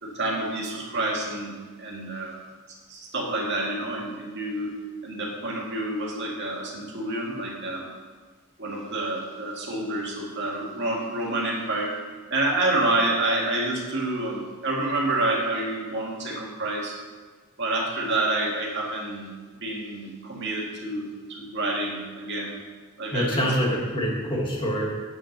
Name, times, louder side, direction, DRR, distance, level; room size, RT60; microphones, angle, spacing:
voice 1, 0.0-2.4 2.9-4.7 5.0-7.9 8.6-11.9 12.3-17.0 17.6-19.3 19.6-22.6 23.0-23.7, right 2 dB, 55° right, -2 dB, 2.0 m, -28 dB
voice 2, 23.1-25.1, equal, 25° left, -2 dB, 1.8 m, -25 dB
8.5 x 5.8 x 6.6 m, 1.4 s
head